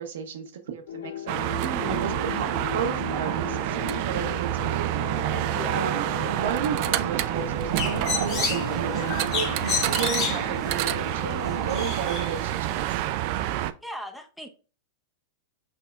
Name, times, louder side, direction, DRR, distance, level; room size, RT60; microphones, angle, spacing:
voice 1, 0.0-1.4 1.9-5.0 5.7-13.0, right 6 dB, 75° right, 0.8 m, -33 dB
sound 1, 0.9-11.8, left 9 dB, 75° left, 0.4 m, -38 dB
sound 2, 1.3-13.7, right 14 dB, 55° right, 0.3 m, -28 dB
voice 2, 1.6-2.0 5.5-5.8 13.8-14.5, right 1 dB, ahead, 0.6 m, -37 dB
Bird, 7.4-12.8, left 5 dB, 40° left, 1.6 m, -32 dB
6.0 x 2.8 x 2.3 m
hypercardioid pair, 115°, 0 cm